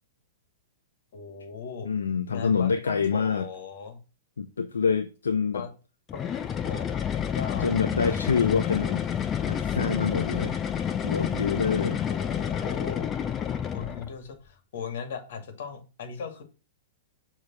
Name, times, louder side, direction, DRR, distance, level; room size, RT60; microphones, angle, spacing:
voice 1, 1.1-1.9 2.3-4.0 5.5-5.7 6.1-8.3 12.1-13.2 13.7-16.4, left 6 dB, 60° left, 2.0 m, -38 dB
voice 2, 1.8-3.5 4.4-5.6 7.6-9.0 9.4-10.6 11.0-12.0 13.8-13.9, left 6 dB, 80° left, 0.6 m, -26 dB
sound 1, 6.1-14.1, left 8 dB, 25° left, 0.8 m, -29 dB
6.5 x 3.3 x 6.0 m
hypercardioid pair, 110°, 0 cm